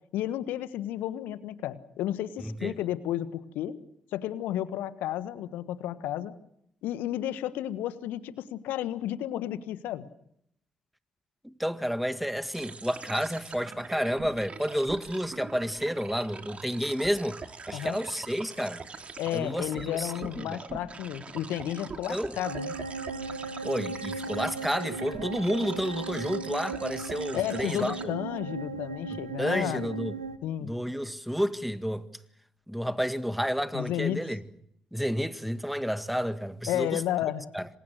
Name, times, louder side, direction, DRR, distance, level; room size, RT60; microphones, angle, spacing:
voice 1, 0.1-3.8 4.1-6.3 6.8-10.1 17.7-18.0 19.2-22.7 27.3-29.9 30.4-30.7 33.7-34.2 36.7-37.5, left 12 dB, 65° left, 1.5 m, -32 dB
voice 2, 2.4-2.7 11.4-17.4 17.7-18.8 19.3-20.6 22.1-22.3 23.6-28.1 29.1-30.1 30.6-32.1 32.7-34.4 34.9-37.0 37.5-37.7, equal, ahead, 1.9 m, -30 dB
sound 1, 12.5-28.0, right 4 dB, 35° right, 2.8 m, -43 dB
sound 2, 22.4-30.4, right 4 dB, 90° right, 0.9 m, -37 dB
27.0 x 27.0 x 6.5 m
figure-of-eight pair, 40°, 3 cm